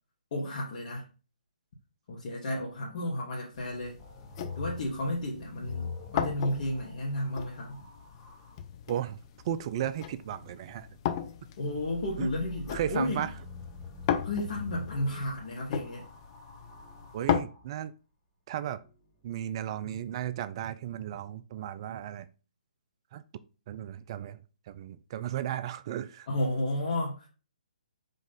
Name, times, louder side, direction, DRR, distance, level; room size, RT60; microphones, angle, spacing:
voice 1, 0.3-1.0 2.1-4.0 4.6-7.8 11.6-13.2 14.2-16.0 26.3-27.3, left 1 dB, 50° left, -4 dB, 1.2 m, -32 dB
sound 1, 3.5-17.4, left 9 dB, 35° left, 0.4 m, -37 dB
sound 2, 4.0-8.6 11.6-17.7 18.7-19.3, left 3 dB, 10° left, 0.9 m, -45 dB
voice 2, 8.9-9.2 9.4-10.9 12.2-12.3 12.7-13.3 17.1-17.9 18.5-18.8 19.2-22.3 23.1-23.2 23.7-24.4 24.7-26.3, right 10 dB, 35° right, 13 dB, 0.3 m, -35 dB
5.1 x 2.4 x 4.0 m, 0.34 s
figure-of-eight pair, 135°, 5 cm